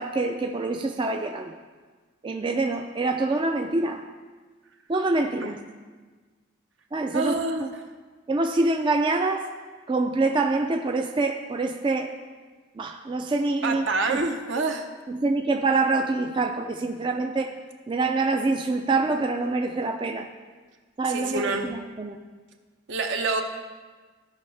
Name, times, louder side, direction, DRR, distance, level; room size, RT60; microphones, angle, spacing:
voice 1, 0.0-1.6 2.2-4.0 4.9-5.6 6.9-7.7 8.3-9.5 9.9-12.1 12.8-14.3 15.1-17.5 17.9-20.3 21.0-22.2, right 3 dB, 25° right, 4 dB, 0.3 m, -25 dB
voice 2, 7.1-7.7 13.6-14.9 21.1-21.7 22.9-23.4, right 3 dB, 65° right, 4 dB, 0.8 m, -27 dB
15.5 x 5.4 x 3.3 m, 1.4 s
head